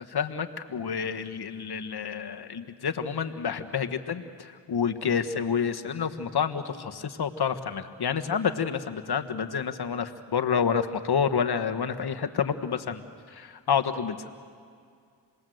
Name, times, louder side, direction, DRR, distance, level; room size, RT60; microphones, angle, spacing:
voice 1, 0.0-13.0 13.3-14.3, left 7 dB, 65° left, 7 dB, 1.5 m, -29 dB
27.5 x 20.5 x 7.9 m, 2.2 s
cardioid pair, 45°, 42 cm